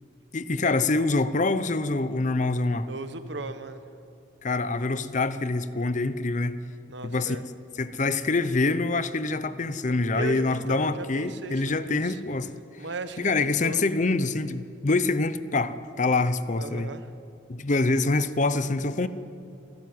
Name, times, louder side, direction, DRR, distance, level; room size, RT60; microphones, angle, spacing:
voice 1, 0.3-2.9 4.4-6.6 7.0-7.4 7.8-12.5 13.2-16.9 17.5-19.1, left 3 dB, 40° left, 0.7 m, -25 dB
voice 2, 2.9-3.8 6.9-7.4 10.1-12.2 12.8-13.9 16.6-17.1, right 2 dB, 65° right, 1.2 m, -37 dB
27.0 x 12.5 x 9.5 m
head